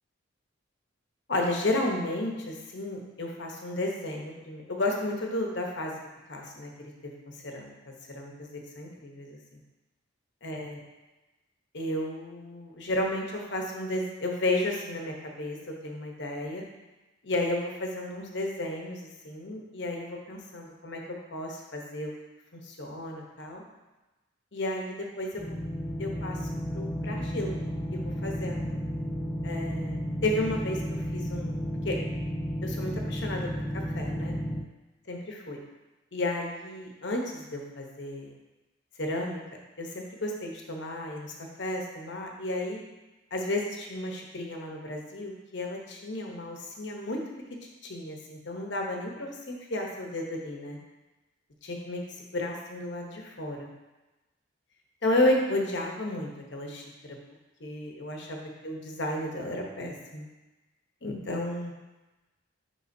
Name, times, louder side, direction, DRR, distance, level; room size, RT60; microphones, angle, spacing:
voice 1, 1.3-6.0 6.3-7.1 7.4-7.7 8.1-9.6 10.4-10.8 11.7-16.6 17.2-21.0 21.3-22.1 22.5-23.6 24.5-25.4 26.0-26.5 26.7-27.6 27.9-28.8 29.4-31.5 31.8-32.0 32.6-34.3 35.1-35.6 36.1-38.3 39.0-39.4 39.8-41.3 41.6-42.8 43.3-47.2 47.6-50.8 51.6-52.0 52.3-53.7 55.0-57.2 57.6-60.3 61.0-61.7, left 1 dB, 55° left, 0 dB, 0.9 m, -33 dB
sound 1, 25.3-34.6, equal, 10° left, 0.3 m, -33 dB
10.5 x 3.7 x 2.7 m, 1.1 s
head